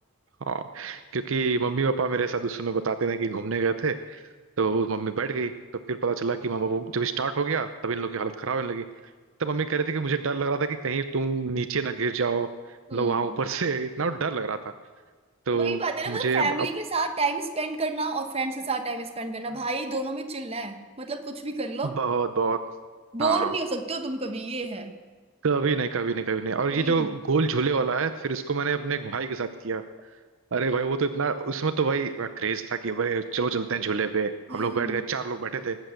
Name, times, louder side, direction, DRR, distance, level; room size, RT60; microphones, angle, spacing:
voice 1, 0.4-4.2 4.6-5.5 5.9-8.8 9.4-14.6 15.5-15.8 16.1-16.7 21.8-22.6 23.2-23.5 25.4-29.8 30.5-35.8, right 4 dB, 60° right, 10 dB, 0.6 m, -27 dB
voice 2, 12.9-13.4 15.5-22.0 23.1-24.9 26.7-27.1 34.5-35.0, right 3 dB, 25° right, 6 dB, 1.2 m, -30 dB
19.5 x 8.2 x 7.8 m, 1.5 s
head